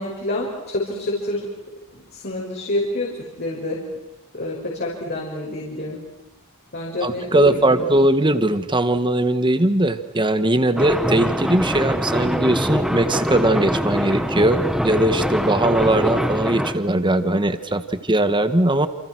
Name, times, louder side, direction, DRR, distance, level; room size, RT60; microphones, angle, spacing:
voice 1, 0.0-1.5 2.1-3.1 3.4-3.8 4.3-6.0 6.7-7.9, left 1 dB, 50° left, -3 dB, 5.9 m, -27 dB
voice 2, 7.0-18.9, right 1 dB, 20° right, 10 dB, 1.6 m, -20 dB
sound 1, 10.8-16.7, equal, ahead, 1.9 m, -23 dB
29.5 x 29.0 x 6.3 m, 0.98 s
head